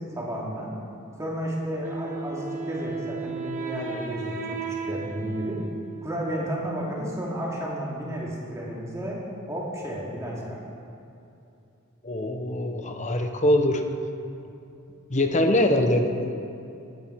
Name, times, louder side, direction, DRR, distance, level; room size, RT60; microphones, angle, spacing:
voice 1, 0.1-0.7 1.2-5.6 6.0-9.2 9.5-10.6, equal, 15° right, -4 dB, 2.6 m, -32 dB
Wind instrument woodwind instrument, 1.8-6.6, right 4 dB, 35° right, 1.6 m, -35 dB
voice 2, 12.0-13.8 15.1-16.4, left 1 dB, 35° left, 6 dB, 1.0 m, -23 dB
19.5 x 9.4 x 4.8 m, 2.7 s
head